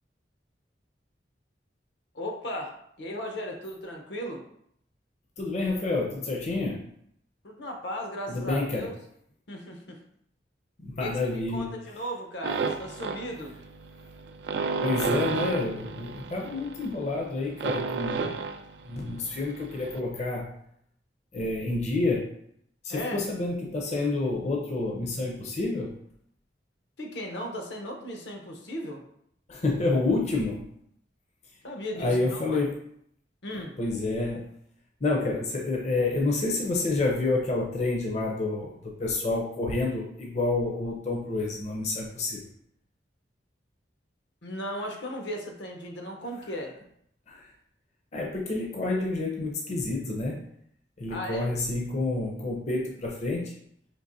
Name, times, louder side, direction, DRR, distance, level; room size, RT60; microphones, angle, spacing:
voice 1, 2.1-4.4 7.4-8.9 9.5-10.0 11.0-13.6 22.9-23.2 27.0-29.0 31.6-32.6 33.4-33.7 44.4-46.7 51.1-51.5, equal, 75° left, 2 dB, 0.8 m, -36 dB
voice 2, 5.4-6.9 8.3-8.9 10.8-11.8 14.8-18.4 18.8-20.5 21.3-22.3 22.8-25.9 29.5-30.7 31.9-32.7 33.5-34.5 35.0-42.4 47.3-47.5 48.1-50.4 51.0-53.5, left 2 dB, 40° left, -1 dB, 0.5 m, -29 dB
sound 1, 12.4-20.0, right 4 dB, 70° right, 0.4 m, -32 dB
5.2 x 2.9 x 2.6 m, 0.71 s
head